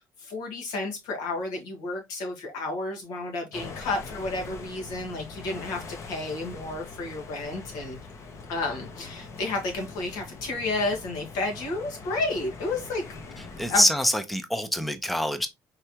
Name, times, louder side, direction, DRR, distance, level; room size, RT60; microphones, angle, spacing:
voice 1, 0.0-8.0 8.5-13.0 13.7-13.8, left 2 dB, 85° left, 1.8 m, -31 dB
sound 1, 3.5-13.9, left 3 dB, 45° left, 1.0 m, -42 dB
voice 2, 13.4-15.5, left 1 dB, ahead, 0.6 m, -25 dB
4.6 x 3.3 x 2.9 m
cardioid pair, 115°, 7 cm